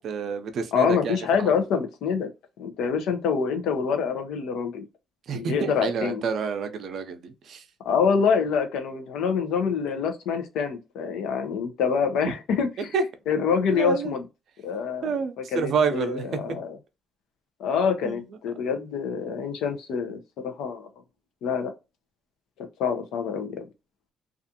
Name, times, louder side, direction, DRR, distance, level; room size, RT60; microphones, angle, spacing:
voice 1, 0.0-1.6 5.3-7.6 12.9-13.0 13.7-14.1 15.0-16.6 18.0-18.3, right 5 dB, 65° right, 0.5 m, -28 dB
voice 2, 0.7-2.3 2.6-4.9 5.3-6.2 7.8-12.9 13.3-14.2 14.6-15.1 15.5-16.8 17.6-20.2 20.4-20.9 21.4-21.7 22.6-23.7, left 6 dB, 90° left, 0.6 m, -26 dB
2.5 x 2.4 x 2.7 m
cardioid pair, 90°, 0 cm